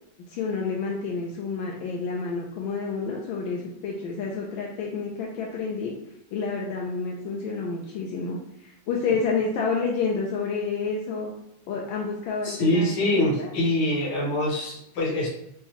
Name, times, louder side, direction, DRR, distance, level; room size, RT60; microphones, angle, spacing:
voice 1, 0.3-5.9 6.3-11.3 11.7-13.5, left 4 dB, 80° left, -2 dB, 1.4 m, -29 dB
voice 2, 12.4-15.3, left 1 dB, 65° left, -3 dB, 1.6 m, -24 dB
5.4 x 2.2 x 2.9 m, 0.77 s
omnidirectional pair, 2.1 m